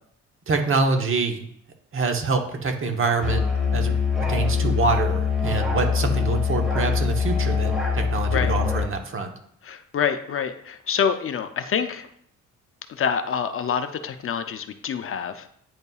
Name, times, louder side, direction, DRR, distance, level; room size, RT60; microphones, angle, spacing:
voice 1, 0.5-1.4 1.9-3.4 3.7-3.9 4.3-9.3, right 4 dB, 45° right, 4 dB, 1.1 m, -25 dB
Musical instrument, 3.2-8.9, left 6 dB, ahead, 2.5 m, -23 dB
voice 2, 9.6-12.1 12.9-15.5, left 7 dB, 45° left, 9 dB, 0.6 m, -26 dB
9.3 x 5.3 x 2.4 m, 0.67 s
cardioid pair, 90°, 30 cm